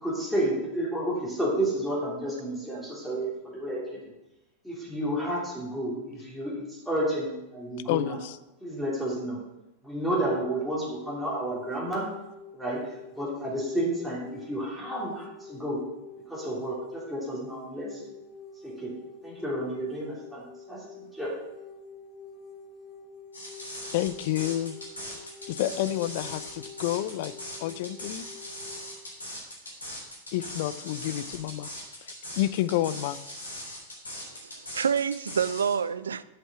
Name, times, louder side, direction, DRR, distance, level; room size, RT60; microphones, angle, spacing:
voice 1, 0.0-4.1 4.6-8.2 8.6-9.4 9.8-12.1 12.5-12.8 13.2-15.8 16.3-18.1 18.6-18.9 19.2-20.8 21.1-21.3, right 1 dB, ahead, -8 dB, 3.0 m, -31 dB
voice 2, 7.9-8.4 23.9-24.8 25.5-27.3 27.6-28.3 30.3-31.7 32.0-33.2, left 14 dB, 50° left, 15 dB, 0.5 m, -29 dB
sound 1, 10.9-28.9, left 4 dB, 25° left, 1.9 m, -47 dB
sound 2, 23.3-35.7, left 1 dB, 75° left, 3.3 m, -40 dB
voice 3, 34.3-36.2, right 7 dB, 70° right, 16 dB, 0.4 m, -28 dB
8.0 x 7.6 x 5.9 m, 0.96 s
figure-of-eight pair, 90°, 0 cm